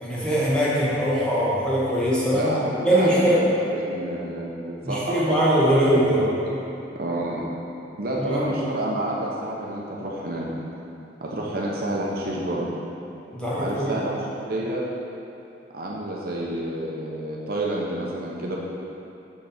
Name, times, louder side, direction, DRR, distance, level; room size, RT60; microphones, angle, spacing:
voice 1, 0.0-2.5 2.8-3.4 4.8-6.2 8.2-8.4 13.3-14.0, equal, 5° left, -9 dB, 1.3 m, -21 dB
voice 2, 2.3-5.8 6.2-6.6 6.9-7.4 8.0-10.5 11.2-12.7 13.6-14.8 15.7-18.6, right 1 dB, 55° right, -3 dB, 0.8 m, -29 dB
6.2 x 5.8 x 4.2 m, 2.8 s
head